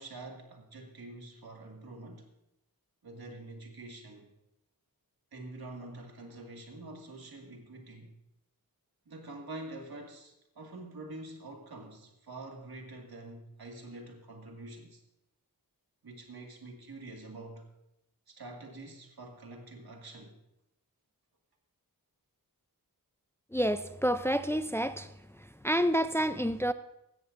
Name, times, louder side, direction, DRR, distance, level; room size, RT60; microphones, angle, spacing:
voice 1, 0.0-2.3 3.0-4.3 5.3-8.1 9.1-15.0 16.0-17.7 18.3-20.3, right 2 dB, 90° right, 2.0 m, -46 dB
voice 2, 23.5-25.1 25.4-26.7, equal, 5° left, 0.5 m, -29 dB
16.5 x 13.5 x 2.6 m
wide cardioid pair, 80°, 36 cm